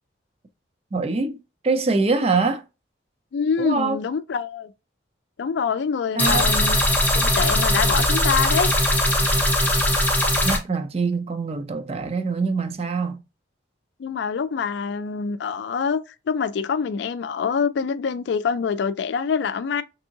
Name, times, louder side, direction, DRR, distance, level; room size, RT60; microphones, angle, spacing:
voice 1, 0.9-1.4 1.6-2.6 3.6-4.0 6.1-6.5 10.4-13.2, right 4 dB, 30° right, 0.4 m, -24 dB
voice 2, 3.3-4.7 5.4-6.8 7.2-8.7 14.0-16.0 16.3-19.8, left 6 dB, 65° left, 0.3 m, -25 dB
sound 1, 6.2-10.6, left 1 dB, 10° left, 0.6 m, -20 dB
3.4 x 2.7 x 2.7 m
head